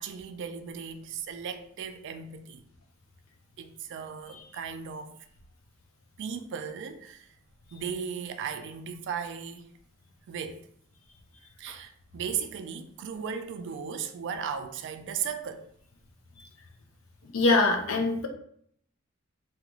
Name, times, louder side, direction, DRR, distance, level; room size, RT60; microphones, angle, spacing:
voice 1, 0.0-2.6 3.6-5.2 6.2-7.3 7.7-9.7 10.3-10.6 11.6-15.7, right 7 dB, 60° right, 0.3 m, -36 dB
voice 2, 17.2-18.3, left 3 dB, 75° left, 0.5 m, -24 dB
2.4 x 2.3 x 3.0 m
head